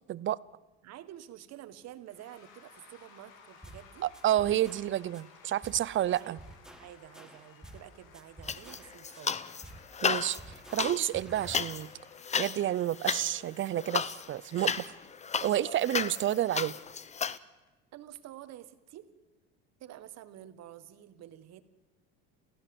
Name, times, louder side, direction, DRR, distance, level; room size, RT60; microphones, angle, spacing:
voice 1, 0.8-4.1 6.2-6.4 6.8-9.4 17.9-19.1 19.8-21.6, right 12 dB, 55° right, 11 dB, 1.7 m, -49 dB
Cheering / Applause / Crowd, 2.1-17.7, left 6 dB, 75° left, 3.2 m, -59 dB
sound 1, 3.6-3.9 4.1-5.2 5.6-5.9 6.1-7.9 8.1-9.2 9.6-9.9 10.1-11.6, right 1 dB, ahead, 1.5 m, -50 dB
voice 2, 4.0-6.4 10.0-11.9 12.4-14.9 15.4-16.7, right 12 dB, 40° right, 21 dB, 0.7 m, -30 dB
sound 2, 8.4-9.6 9.9-17.4, left 6 dB, 20° left, 0.8 m, -34 dB
28.0 x 15.5 x 7.9 m, 1.1 s
supercardioid pair, 105°, 31 cm